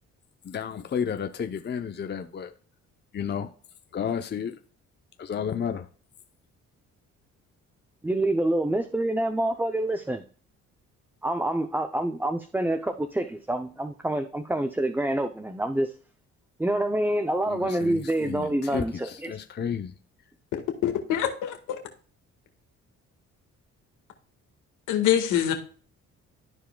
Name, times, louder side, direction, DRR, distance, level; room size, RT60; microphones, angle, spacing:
voice 1, 0.4-2.5 3.1-3.5 3.9-4.6 5.2-5.9 17.5-19.9, left 7 dB, 35° left, 0.7 m, -32 dB
voice 2, 8.0-10.2 11.2-15.9 16.6-19.3, right 1 dB, 5° right, 0.5 m, -27 dB
voice 3, 20.8-21.8 24.9-25.5, left 10 dB, 90° left, 1.7 m, -24 dB
13.5 x 4.7 x 2.3 m
cardioid pair, 90°, 30 cm